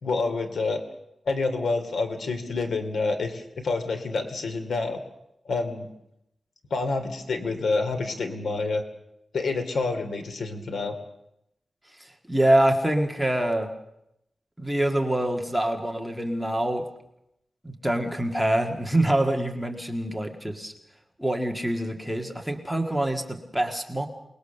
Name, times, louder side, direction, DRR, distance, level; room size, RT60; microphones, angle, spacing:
voice 1, 0.0-0.8 1.3-5.0 5.4-5.9 6.7-8.8 9.3-11.0, left 3 dB, 85° left, 7 dB, 2.7 m, -28 dB
voice 2, 12.3-13.7 14.6-16.8 17.6-20.7 21.2-24.1, right 1 dB, ahead, 3 dB, 1.7 m, -25 dB
28.0 x 20.0 x 6.7 m, 0.82 s
wide cardioid pair, 180°, 0 cm